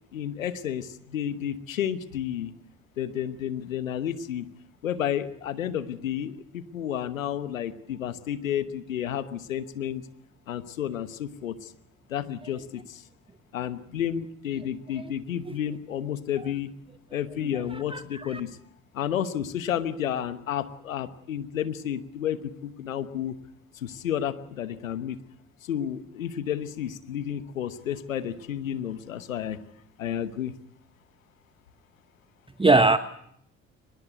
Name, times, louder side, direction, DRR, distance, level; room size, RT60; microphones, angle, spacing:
voice 1, 0.1-2.5 3.0-4.5 4.8-10.0 10.5-11.7 12.1-13.0 13.5-16.7 17.1-18.6 18.9-23.3 23.7-25.2 25.6-29.6 30.0-30.5, left 10 dB, 90° left, 1.1 m, -31 dB
voice 2, 17.7-18.4 32.6-33.0, right 3 dB, 15° right, 1.1 m, -21 dB
23.5 x 20.5 x 8.1 m
hypercardioid pair, 50°, 39 cm